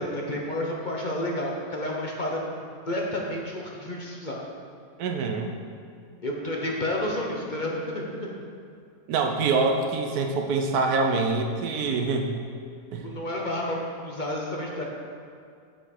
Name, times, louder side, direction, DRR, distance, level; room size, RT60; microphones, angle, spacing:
voice 1, 0.0-4.4 6.2-8.3 13.0-14.8, left 1 dB, 40° left, -2 dB, 0.9 m, -30 dB
voice 2, 5.0-5.5 9.1-12.4 12.9-13.1, right 4 dB, 85° right, 3 dB, 1.3 m, -25 dB
7.7 x 7.0 x 4.3 m, 2.3 s
omnidirectional pair, 1.6 m